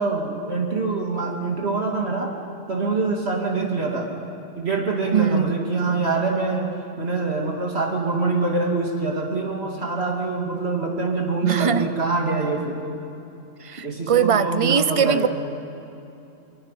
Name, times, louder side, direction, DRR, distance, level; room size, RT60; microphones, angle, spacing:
voice 1, 0.0-2.3 2.7-4.1 4.5-6.7 7.0-12.8 13.8-15.3, right 3 dB, 55° right, 0 dB, 2.8 m, -24 dB
voice 2, 5.1-5.5 11.4-11.8 13.7-15.3, right 7 dB, 35° right, 12 dB, 0.6 m, -21 dB
24.0 x 23.0 x 5.8 m, 2.8 s
omnidirectional pair, 1.3 m